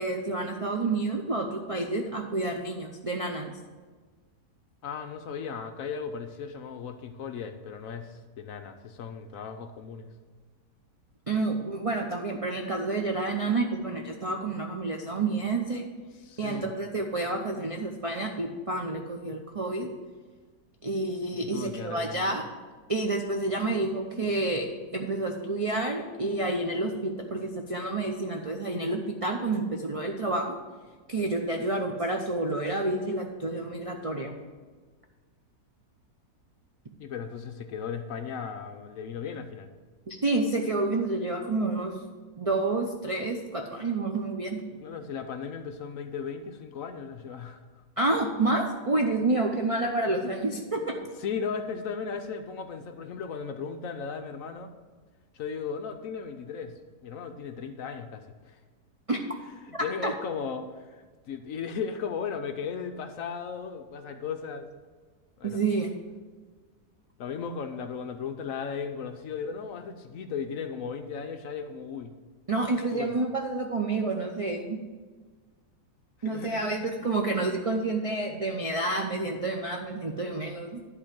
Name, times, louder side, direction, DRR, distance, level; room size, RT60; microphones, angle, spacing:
voice 1, 0.0-3.5 11.3-15.9 16.4-19.9 20.8-22.4 22.9-30.6 31.1-34.3 40.1-41.9 42.4-44.6 48.0-51.0 59.1-59.2 59.7-60.1 65.4-65.9 72.5-74.8 76.2-80.8, right 2 dB, 65° right, 2 dB, 0.3 m, -29 dB
voice 2, 4.8-10.1 16.3-16.7 21.5-22.4 37.0-39.7 44.8-47.6 51.2-54.7 55.3-58.6 59.6-64.7 65.4-65.6 67.2-72.2 72.9-73.1 76.2-76.8, left 6 dB, 65° left, 7 dB, 0.9 m, -36 dB
11.0 x 3.9 x 7.5 m, 1.4 s
omnidirectional pair, 1.8 m